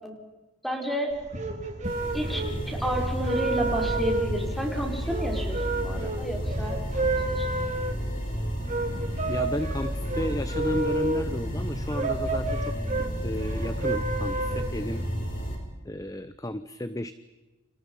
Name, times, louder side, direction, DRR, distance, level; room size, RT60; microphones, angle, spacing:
voice 1, 0.6-1.2 2.1-7.6, equal, ahead, 2 dB, 5.0 m, -32 dB
sound 1, 1.1-15.1, right 2 dB, 35° right, 3.3 m, -31 dB
sound 2, 1.8-15.6, equal, 45° left, 6.5 m, -32 dB
voice 2, 9.3-15.1 15.8-17.1, left 1 dB, 15° left, 12 dB, 0.8 m, -33 dB
30.0 x 27.5 x 5.5 m, 1.2 s
head